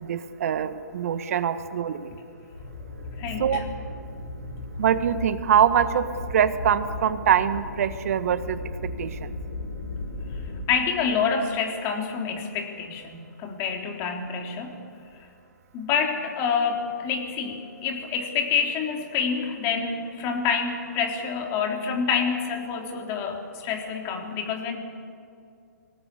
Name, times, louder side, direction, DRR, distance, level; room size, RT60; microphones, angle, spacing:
voice 1, 0.0-2.1 3.4-3.6 4.8-6.1 6.3-9.3, right 9 dB, 50° right, 11 dB, 1.6 m, -24 dB
sound 1, 2.5-10.6, left 2 dB, 65° left, 6.3 m, -36 dB
voice 2, 3.2-3.6 10.3-10.4 10.7-14.8 15.7-24.8, left 6 dB, 25° left, 3 dB, 3.5 m, -27 dB
26.0 x 18.5 x 8.5 m, 2.4 s
hypercardioid pair, 140°, 10 cm